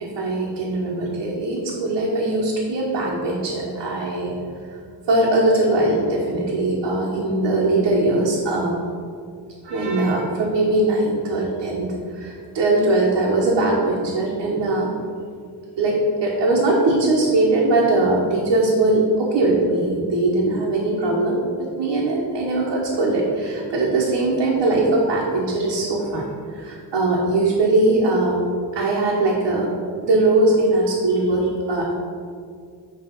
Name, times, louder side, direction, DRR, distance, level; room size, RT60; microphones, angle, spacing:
voice 1, 0.0-4.3 5.1-8.8 9.6-14.9 15.8-26.3 26.6-28.4 28.7-29.7 30.0-31.9, right 2 dB, 80° right, -4 dB, 1.3 m, -20 dB
9.6 x 3.3 x 5.6 m, 2.2 s
wide cardioid pair, 180°, 42 cm